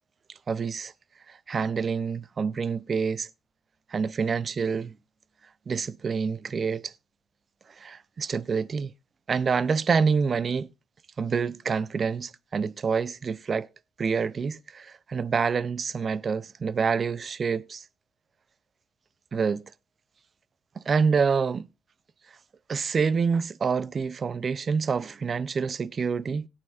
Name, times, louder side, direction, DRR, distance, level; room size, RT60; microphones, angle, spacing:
voice 1, 0.5-0.9 1.3-3.3 3.9-4.9 5.7-6.9 7.8-8.9 9.3-10.7 11.2-13.7 14.0-17.8 19.3-19.6 20.8-21.7 22.7-26.5, right 5 dB, 45° right, 0.4 m, -27 dB
17.5 x 8.7 x 2.4 m
cardioid pair, 90°, 0 cm